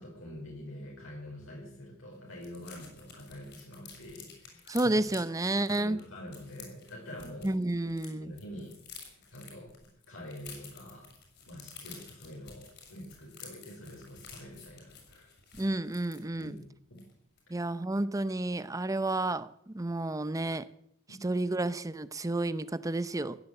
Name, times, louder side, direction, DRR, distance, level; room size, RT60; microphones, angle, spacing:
voice 1, 0.0-4.9 5.8-7.6 8.2-9.7 10.1-11.1 11.5-15.3 16.3-17.0 21.1-21.2, equal, 80° left, -2 dB, 5.3 m, -46 dB
sound 1, 1.4-1.5 1.8-1.9 2.1-8.1 8.4-16.6 17.0-17.1 17.4-17.6, left 6 dB, 60° left, 6.2 m, -51 dB
voice 2, 4.7-6.0 7.4-8.3 15.6-16.6 17.5-20.7 21.2-23.4, right 2 dB, 15° right, 15 dB, 0.6 m, -31 dB
15.5 x 10.0 x 8.2 m, 0.70 s
head